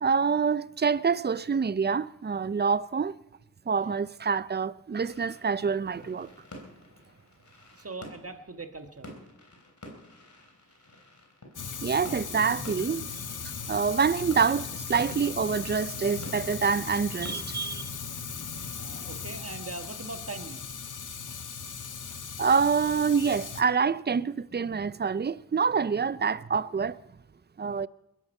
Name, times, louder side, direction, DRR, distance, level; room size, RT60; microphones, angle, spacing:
voice 1, 0.0-3.2 3.7-6.3 11.8-13.1 13.4-17.9 22.4-27.0 27.6-27.9, right 5 dB, 35° right, 0.5 m, -26 dB
sound 1, 5.0-20.4, left 1 dB, 65° left, 3.5 m, -50 dB
voice 2, 7.8-9.1 18.8-20.6, right 3 dB, 50° right, 1.6 m, -40 dB
Fire, 11.5-23.6, left 6 dB, 80° left, 0.9 m, -38 dB
21.0 x 11.0 x 5.5 m
cardioid pair, 40°, 31 cm